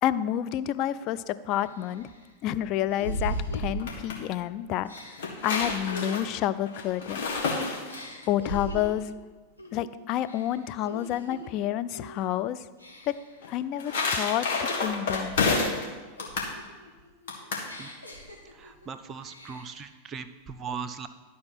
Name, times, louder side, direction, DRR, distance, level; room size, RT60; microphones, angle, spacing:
voice 1, 0.0-2.1 2.4-4.9 5.4-7.3 8.3-9.1 9.7-12.6 13.1-13.2 13.5-15.4, left 12 dB, 40° left, 13 dB, 0.3 m, -29 dB
sound 1, 1.0-1.1 1.6-4.4 4.8-7.5 7.9-9.1 9.6-9.9 10.2-11.5 11.9-12.3 12.8-13.4 13.9-15.8 16.2-18.9 19.2-19.9, right 1 dB, 90° left, 1.3 m, -39 dB
sound 2, 3.6-4.2 5.0-8.3 13.4-15.9 16.2-16.5 17.3-17.7, left 4 dB, 55° left, 1.7 m, -29 dB
voice 2, 18.9-20.3 20.6-21.1, right 6 dB, 25° right, 9 dB, 0.5 m, -38 dB
11.5 x 4.2 x 5.8 m, 1.3 s
figure-of-eight pair, 90°, 0 cm